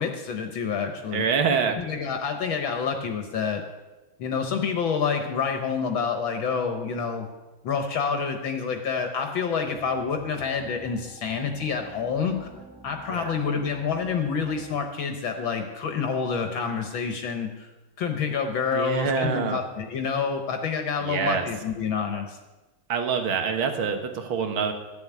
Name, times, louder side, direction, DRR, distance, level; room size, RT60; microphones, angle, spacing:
voice 1, 0.0-1.2 1.8-3.6 4.2-7.3 7.6-12.5 12.8-17.7 18.0-22.4, left 6 dB, 70° left, 5 dB, 1.9 m, -28 dB
voice 2, 1.1-1.8 13.1-13.4 18.7-19.6 21.0-21.5 22.9-24.7, right 6 dB, 75° right, 6 dB, 2.2 m, -26 dB
sound 1, 9.7-14.8, right 1 dB, 5° right, 2.4 m, -47 dB
13.5 x 7.3 x 9.4 m, 1.1 s
omnidirectional pair, 2.3 m